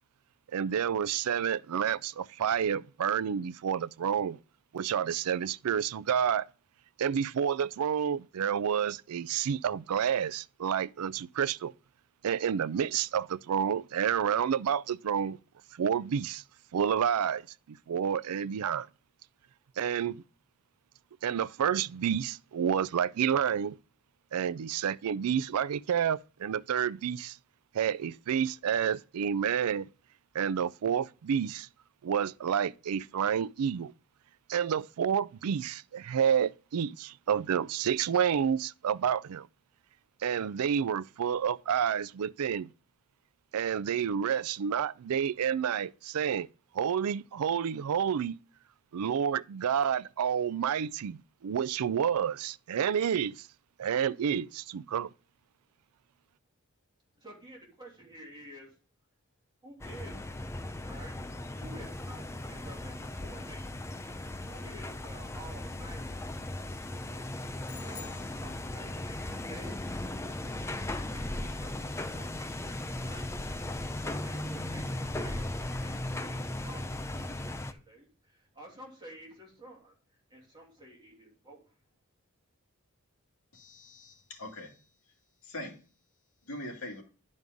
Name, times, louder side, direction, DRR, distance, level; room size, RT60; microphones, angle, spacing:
voice 1, 0.5-4.4 4.7-6.5 7.0-11.7 12.2-15.4 15.8-16.4 16.7-17.4 17.7-18.9 19.8-20.2 21.2-23.8 24.3-27.4 27.7-29.9 30.3-31.7 32.0-33.9 34.5-39.5 40.2-42.7 43.5-46.5 46.7-48.4 48.9-53.3 53.8-55.1, right 8 dB, 85° right, 0.4 m, -29 dB
voice 2, 57.2-58.8 59.6-60.3 60.8-61.2 61.5-63.6 64.5-66.3 66.6-67.3 67.8-73.3 74.0-81.7, right 1 dB, 20° right, 2.9 m, -51 dB
sound 1, 59.8-77.7, left 1 dB, 10° left, 0.4 m, -37 dB
sound 2, 67.7-69.1, left 11 dB, 60° left, 0.6 m, -51 dB
voice 3, 83.5-84.7 85.4-85.7 86.5-87.0, left 1 dB, 75° left, 2.4 m, -42 dB
10.5 x 5.4 x 3.5 m
head